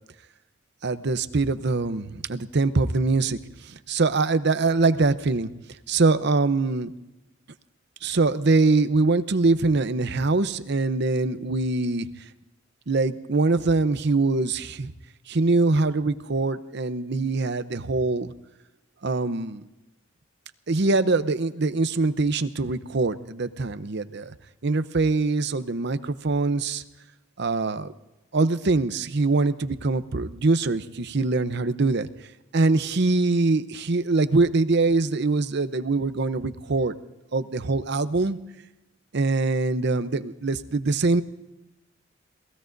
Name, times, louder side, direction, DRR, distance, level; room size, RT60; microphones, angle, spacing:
voice 1, 0.8-5.5 5.9-6.9 8.0-12.1 12.9-14.9 15.3-18.3 19.0-19.6 20.7-24.3 24.6-26.8 27.4-27.9 28.3-32.1 32.5-36.9 37.3-38.4 39.1-41.2, right 3 dB, 60° right, 12 dB, 0.7 m, -23 dB
27.5 x 19.0 x 2.6 m, 0.98 s
head